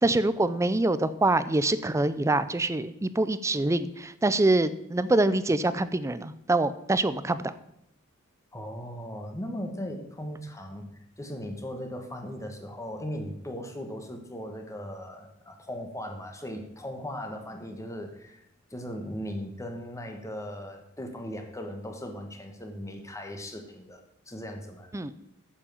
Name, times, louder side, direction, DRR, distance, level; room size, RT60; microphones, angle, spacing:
voice 1, 0.0-7.5 24.9-25.1, right 2 dB, 15° right, 14 dB, 0.5 m, -25 dB
voice 2, 8.5-10.9 11.2-18.4 18.7-24.9, equal, 15° left, 5 dB, 1.5 m, -38 dB
8.8 x 7.5 x 7.0 m, 0.79 s
head